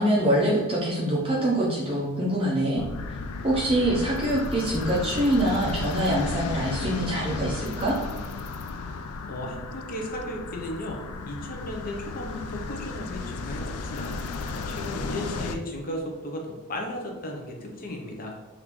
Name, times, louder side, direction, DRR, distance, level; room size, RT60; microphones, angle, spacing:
voice 1, 0.0-2.8 3.4-8.0, right 1 dB, 25° right, -5 dB, 0.5 m, -24 dB
sound 1, 2.8-15.6, left 4 dB, 90° left, 0.3 m, -34 dB
voice 2, 9.3-11.0 11.3-14.2 14.5-16.4 16.7-18.3, left 1 dB, 40° left, 1 dB, 0.5 m, -35 dB
3.5 x 2.5 x 2.9 m, 1.2 s
head